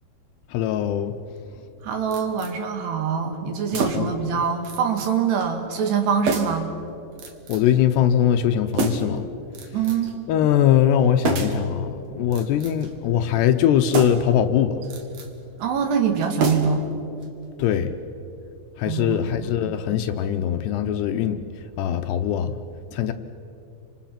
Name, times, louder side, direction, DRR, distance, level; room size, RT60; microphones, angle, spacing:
voice 1, 0.5-1.1 3.7-4.1 7.5-9.3 10.3-11.9 12.1-14.8 17.6-17.9 18.8-21.4 21.8-22.5 22.9-23.1, left 10 dB, 75° left, 8 dB, 2.8 m, -21 dB
voice 2, 1.8-6.7 9.7-10.1 15.6-16.9 18.9-19.8, right 6 dB, 70° right, 5 dB, 3.8 m, -24 dB
sound 1, 2.1-2.5 3.7-4.2 4.6-5.1 5.4-5.5 6.3-6.7 7.2-7.7 8.7-9.2 9.5-10.1 11.2-11.7 12.2-12.9 13.9-14.3 14.8-15.3 16.4-16.9 17.2-17.3, right 4 dB, 50° right, 2.1 m, -28 dB
29.5 x 26.0 x 5.9 m, 2.7 s
omnidirectional pair, 5.2 m